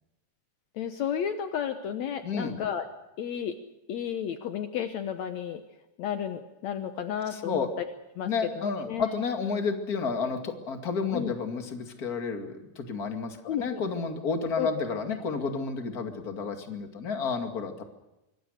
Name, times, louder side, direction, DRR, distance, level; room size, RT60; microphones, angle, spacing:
voice 1, 0.7-2.8 3.2-3.6 3.9-5.6 6.0-9.1 11.1-11.3 13.4-13.8 14.6-14.7 15.1-15.2, left 9 dB, 80° left, 8 dB, 1.6 m, -32 dB
voice 2, 2.2-2.6 7.3-7.7 8.2-17.8, left 5 dB, 30° left, 5 dB, 1.9 m, -31 dB
25.5 x 22.5 x 6.5 m, 0.97 s
omnidirectional pair, 4.7 m